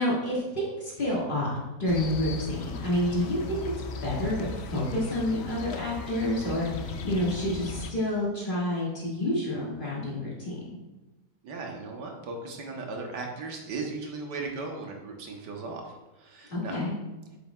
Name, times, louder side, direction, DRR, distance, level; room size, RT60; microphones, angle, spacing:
voice 1, 0.0-3.6 4.0-10.6 16.5-16.9, left 1 dB, 30° left, -6 dB, 2.0 m, -29 dB
sound 1, 1.9-7.9, left 3 dB, 75° left, 0.6 m, -37 dB
voice 2, 11.4-16.7, right 3 dB, 85° right, 1 dB, 1.7 m, -37 dB
7.5 x 7.1 x 2.3 m, 1.1 s
omnidirectional pair, 1.8 m